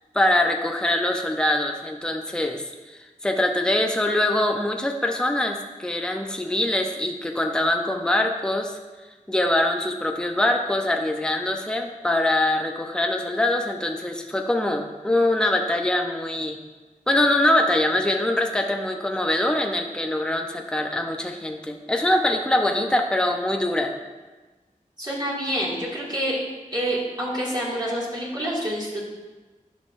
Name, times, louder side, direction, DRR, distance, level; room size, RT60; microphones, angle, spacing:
voice 1, 0.1-8.8 9.3-16.6 17.1-23.9, left 1 dB, 5° left, 3 dB, 0.7 m, -23 dB
voice 2, 25.0-26.4 26.7-29.1, equal, 30° right, -6 dB, 2.2 m, -27 dB
11.5 x 5.5 x 2.6 m, 1.2 s
wide cardioid pair, 55°, 14 cm